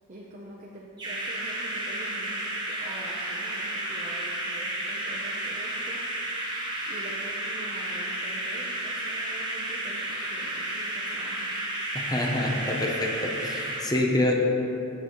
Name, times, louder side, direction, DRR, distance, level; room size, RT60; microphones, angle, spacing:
voice 1, 0.1-6.5 6.9-11.6, right 1 dB, 35° right, -3 dB, 0.6 m, -45 dB
sound 1, 1.0-13.8, right 1 dB, 20° right, 1.1 m, -32 dB
voice 2, 11.9-14.3, left 1 dB, 20° left, 0 dB, 0.6 m, -27 dB
8.7 x 6.7 x 3.0 m, 2.9 s
head